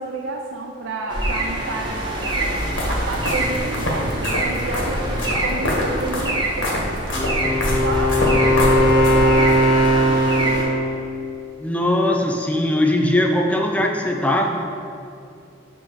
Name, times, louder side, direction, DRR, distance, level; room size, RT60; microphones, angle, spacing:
voice 1, 0.0-2.6 2.9-7.0 7.8-8.2 8.8-10.7, right 2 dB, 80° right, 1 dB, 0.5 m, -30 dB
sound 1, 1.1-10.6, right 1 dB, 25° right, 0.8 m, -26 dB
sound 2, 2.3-9.6, equal, 85° left, 1.3 m, -25 dB
Wind instrument woodwind instrument, 7.1-11.0, equal, 45° left, 0.6 m, -18 dB
voice 2, 11.6-14.6, left 1 dB, 5° left, 1 dB, 0.4 m, -20 dB
7.0 x 3.0 x 5.9 m, 2.5 s
head